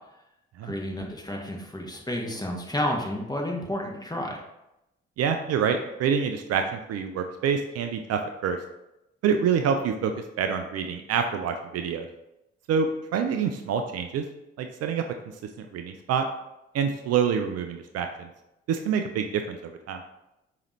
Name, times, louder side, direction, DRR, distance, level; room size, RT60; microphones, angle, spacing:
voice 1, 0.6-4.4, left 1 dB, 15° left, 0 dB, 1.1 m, -31 dB
voice 2, 5.2-8.6 9.2-10.1 10.4-12.1 12.7-14.2 14.6-15.0 15.7-16.2 16.7-18.3 18.7-20.0, right 7 dB, 55° right, 6 dB, 0.5 m, -26 dB
5.0 x 2.8 x 3.1 m, 0.88 s
hypercardioid pair, 45°, 30 cm